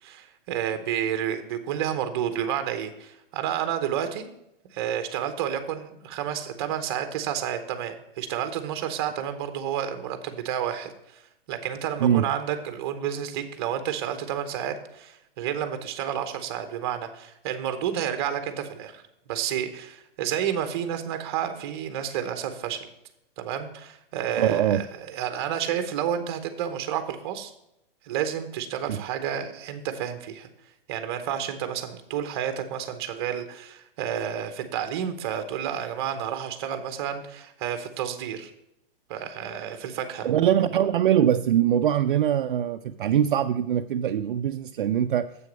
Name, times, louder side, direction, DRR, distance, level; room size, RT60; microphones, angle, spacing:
voice 1, 0.0-4.3 4.7-11.2 11.5-19.0 19.3-22.9 23.4-27.5 28.0-30.5 30.9-38.5 39.1-40.3, right 9 dB, 25° right, 9 dB, 0.8 m, -30 dB
voice 2, 24.4-24.8 28.9-29.0 40.2-45.3, right 10 dB, 60° right, 7 dB, 0.5 m, -22 dB
7.8 x 6.4 x 5.1 m, 0.84 s
hypercardioid pair, 165°, 29 cm